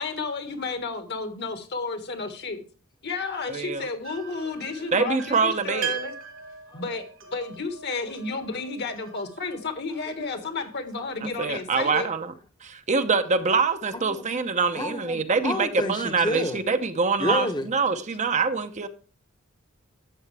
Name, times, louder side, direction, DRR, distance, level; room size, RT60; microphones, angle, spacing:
voice 1, 0.0-2.6 3.0-6.1 6.7-7.0 7.3-12.1, left 3 dB, 55° left, 1.6 m, -32 dB
voice 2, 3.5-3.9 4.9-5.9 11.2-12.3 12.6-18.9, right 4 dB, 35° right, 0.7 m, -25 dB
sound 1, 4.0-11.0, right 7 dB, 80° right, 2.8 m, -40 dB
voice 3, 13.9-14.2 14.7-16.6 17.2-17.7, left 1 dB, 20° left, 0.9 m, -29 dB
12.0 x 7.8 x 3.3 m
head